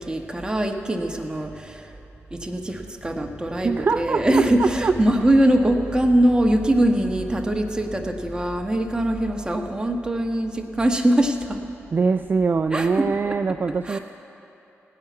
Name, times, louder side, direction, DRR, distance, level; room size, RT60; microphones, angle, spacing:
voice 1, 0.0-2.0 2.3-11.6 12.7-13.3 13.8-14.0, right 1 dB, 15° right, 3 dB, 1.4 m, -22 dB
voice 2, 3.6-4.9 11.9-14.0, right 4 dB, 40° right, 10 dB, 0.4 m, -23 dB
16.0 x 5.8 x 9.4 m, 2.9 s
cardioid pair, 55°, 5 cm